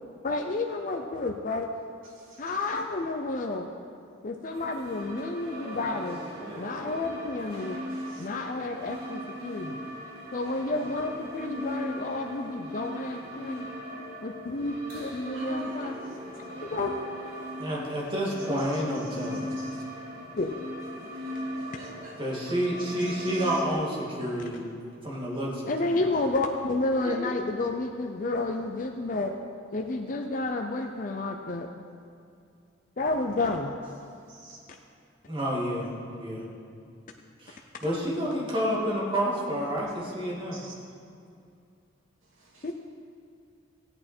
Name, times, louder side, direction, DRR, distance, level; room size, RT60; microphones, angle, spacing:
voice 1, 0.2-1.7 2.4-3.7 4.2-6.2 6.6-7.8 8.2-9.8 10.3-13.7 14.2-16.0 16.6-16.9 20.4-20.5 25.7-29.3 29.7-31.7 33.0-33.7 42.6-42.7, left 2 dB, 40° left, 3 dB, 0.5 m, -30 dB
sound 1, 4.5-23.7, equal, 55° right, 2.5 m, -39 dB
voice 2, 7.9-8.3 15.3-16.2 18.3-18.6 19.6-19.8 21.7-22.2 22.8-23.4 34.3-34.6 40.5-40.7 42.4-42.7, right 2 dB, 90° right, -4 dB, 2.6 m, -44 dB
voice 3, 17.6-19.5 22.2-24.6 25.0-25.9 27.0-27.4 35.3-36.5 37.4-40.6, equal, 25° right, -5 dB, 2.2 m, -29 dB
15.5 x 8.7 x 4.4 m, 2.4 s
head